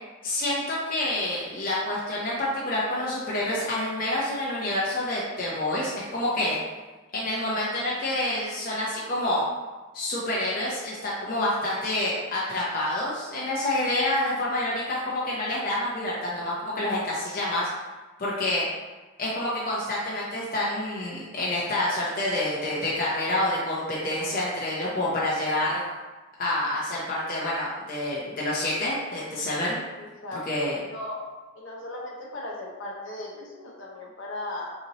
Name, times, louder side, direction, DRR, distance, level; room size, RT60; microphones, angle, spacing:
voice 1, 0.2-6.6 7.1-9.4 9.9-17.7 18.2-18.6 19.2-25.8 26.4-29.8 30.3-30.8, left 1 dB, 40° left, -6 dB, 0.7 m, -28 dB
voice 2, 30.0-31.2 31.5-34.7, left 1 dB, 65° left, -3 dB, 1.0 m, -37 dB
5.6 x 3.0 x 2.8 m, 1.2 s
head